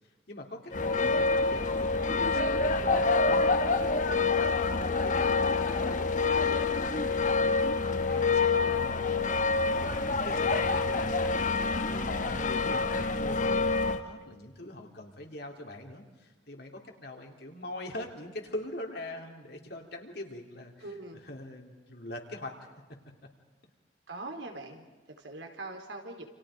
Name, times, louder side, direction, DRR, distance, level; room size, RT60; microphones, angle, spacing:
voice 1, 0.3-9.3 10.1-20.7 21.3-22.6, left 1 dB, 60° left, 2 dB, 3.5 m, -43 dB
sound 1, 0.7-14.0, left 3 dB, 45° left, 1.2 m, -27 dB
voice 2, 20.8-21.2 24.1-26.3, right 2 dB, 80° right, 3 dB, 4.0 m, -42 dB
29.5 x 28.0 x 5.1 m, 1.3 s
head